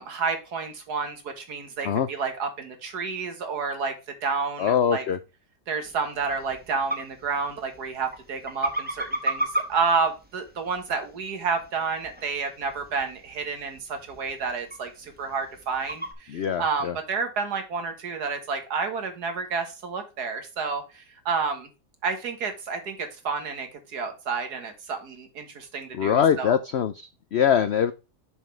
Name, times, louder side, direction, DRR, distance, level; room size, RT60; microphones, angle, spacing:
voice 1, 0.0-3.9 4.2-5.0 5.7-21.7 22.0-26.6, right 5 dB, 70° right, 6 dB, 2.0 m, -30 dB
voice 2, 4.6-5.2 16.3-17.0 25.9-27.9, left 8 dB, 70° left, 12 dB, 0.6 m, -23 dB
sound 1, 5.8-16.1, right 1 dB, 5° right, 1.1 m, -36 dB
7.0 x 6.1 x 3.3 m, 0.30 s
omnidirectional pair, 1.8 m